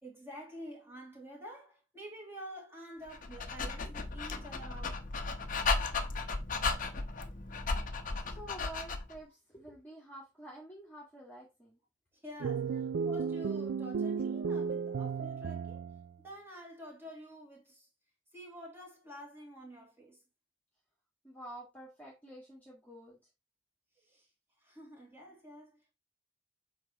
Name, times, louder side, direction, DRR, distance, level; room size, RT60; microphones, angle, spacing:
voice 1, 0.0-5.0 12.2-15.8 16.2-17.9 18.3-20.2 24.0-24.3 24.6-25.9, equal, 10° right, 2.4 m, -49 dB
Dog, 3.1-9.2, left 3 dB, 40° left, 0.9 m, -35 dB
voice 2, 8.2-11.8 21.2-23.3, right 1 dB, 10° left, 1.8 m, -49 dB
sound 1, 12.4-16.1, right 6 dB, 55° right, 0.3 m, -34 dB
7.7 x 5.0 x 3.0 m
head